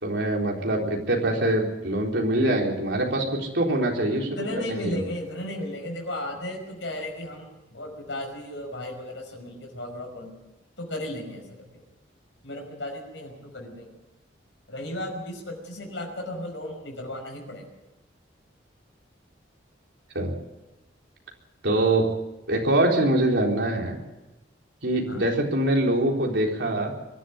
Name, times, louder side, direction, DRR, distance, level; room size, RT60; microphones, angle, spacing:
voice 1, 0.0-3.3 3.5-5.0 20.1-20.3 21.6-22.0 22.5-24.0 24.8-26.9, right 1 dB, 70° right, 0 dB, 4.0 m, -24 dB
voice 2, 4.1-10.3 10.8-11.7 12.4-13.9 14.7-17.6 21.7-21.9 25.1-25.2, left 1 dB, 75° left, 1 dB, 5.4 m, -35 dB
23.5 x 12.0 x 9.6 m, 1.0 s
head